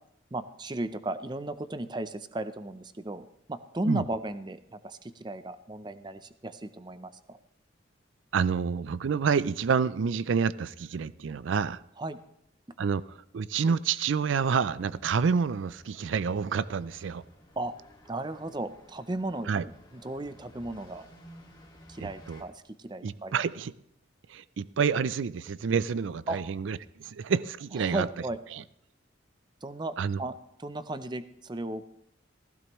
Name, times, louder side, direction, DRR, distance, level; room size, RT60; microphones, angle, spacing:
voice 1, 0.3-7.4 12.0-12.2 17.6-17.7 18.1-21.1 21.9-23.3 26.3-26.4 27.8-28.4 29.6-31.9, right 2 dB, 25° right, 0.5 m, -35 dB
voice 2, 8.3-11.8 12.8-17.2 19.5-19.7 22.0-22.4 23.0-23.7 24.3-28.1 28.5-28.6 30.0-30.2, right 6 dB, 80° right, 0.4 m, -28 dB
sound 1, 14.8-22.4, equal, 20° left, 2.1 m, -55 dB
15.5 x 15.5 x 3.1 m
head